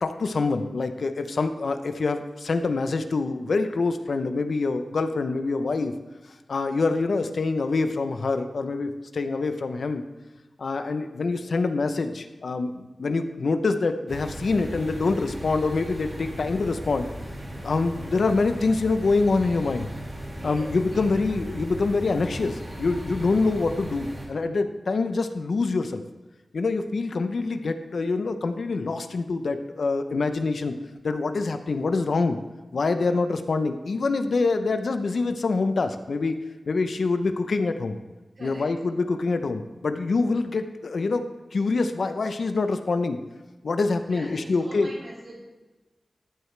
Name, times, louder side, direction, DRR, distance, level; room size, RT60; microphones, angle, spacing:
voice 1, 0.0-5.9 6.5-10.1 10.6-17.1 17.6-19.9 20.4-26.0 26.5-30.7 31.0-32.4 32.7-36.4 36.7-38.0 38.4-41.2 41.5-43.2 43.6-44.9, left 3 dB, 75° left, 8 dB, 0.7 m, -25 dB
sound 1, 14.1-24.3, equal, 40° right, 4.0 m, -37 dB
voice 2, 17.4-17.7 20.3-22.0 38.4-38.7 44.1-45.4, right 1 dB, 55° right, -5 dB, 3.9 m, -43 dB
14.0 x 8.0 x 3.3 m, 1.2 s
wide cardioid pair, 90°, 0 cm